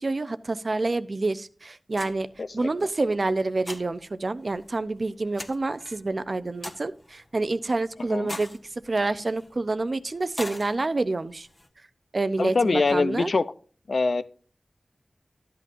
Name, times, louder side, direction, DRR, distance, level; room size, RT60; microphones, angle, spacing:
voice 1, 0.0-2.3 2.5-8.5 8.9-11.5 12.1-13.3, right 2 dB, 50° right, 13 dB, 0.6 m, -27 dB
sound 1, 1.9-11.7, left 1 dB, 25° left, 1.3 m, -44 dB
voice 2, 2.4-2.7 8.1-8.3 12.4-13.4 13.9-14.2, left 3 dB, 70° left, 13 dB, 0.6 m, -23 dB
12.5 x 8.4 x 2.6 m, 0.41 s
wide cardioid pair, 90°, 0 cm